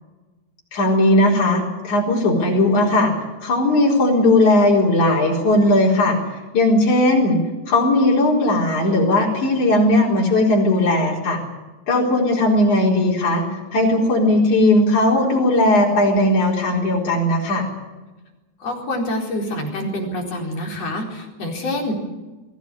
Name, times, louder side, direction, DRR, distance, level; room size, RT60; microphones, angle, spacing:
voice 1, 0.7-6.2 6.5-7.4 7.7-11.4 11.9-13.4 13.7-17.7, left 1 dB, 85° left, -3 dB, 5.8 m, -17 dB
voice 2, 18.6-22.1, left 1 dB, 55° left, 1 dB, 5.4 m, -26 dB
22.5 x 16.5 x 9.9 m, 1.2 s
omnidirectional pair, 3.3 m